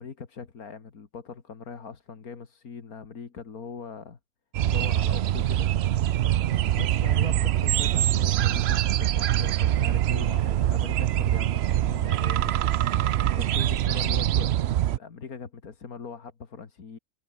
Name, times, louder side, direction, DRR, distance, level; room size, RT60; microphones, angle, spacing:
voice 1, 0.0-4.2 4.7-5.7 6.8-12.7 13.3-17.0, left 5 dB, 90° left, 2.5 m, -41 dB
sound 1, 4.5-15.0, right 12 dB, 65° right, 0.7 m, -24 dB
omnidirectional pair, 1.5 m